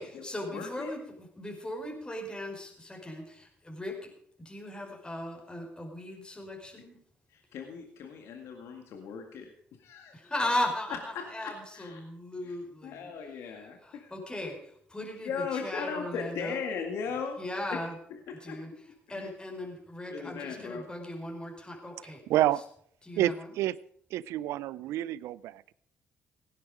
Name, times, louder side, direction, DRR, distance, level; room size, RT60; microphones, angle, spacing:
voice 1, 0.0-4.1 4.4-7.0 10.1-13.1 13.4-16.6 17.4-17.9 18.4-18.7 19.1-22.4 23.0-23.5, left 1 dB, 20° left, 2 dB, 4.9 m, -37 dB
voice 2, 0.5-0.9 7.3-9.5 9.8-10.2 11.4-12.0 12.4-12.6 12.8-14.1 15.2-17.6 18.5-18.6 19.1-19.3 20.1-20.8, left 6 dB, 75° left, 3 dB, 2.0 m, -38 dB
voice 3, 22.3-22.6 23.2-23.8 24.1-25.7, right 13 dB, 80° right, 20 dB, 0.5 m, -28 dB
17.5 x 9.9 x 5.0 m, 0.65 s
supercardioid pair, 60°, 5 cm